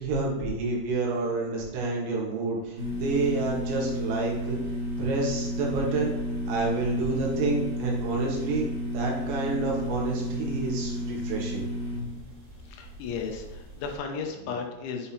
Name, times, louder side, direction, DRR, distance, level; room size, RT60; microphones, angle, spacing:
voice 1, 0.0-4.6 5.0-6.1 6.5-11.7, right 3 dB, 75° right, -2 dB, 3.6 m, -29 dB
sound 1, 2.8-14.0, left 1 dB, 50° right, 3.1 m, -32 dB
voice 2, 12.7-15.1, left 5 dB, 85° left, 3 dB, 3.1 m, -35 dB
8.9 x 5.5 x 2.9 m, 1.1 s
omnidirectional pair, 5.5 m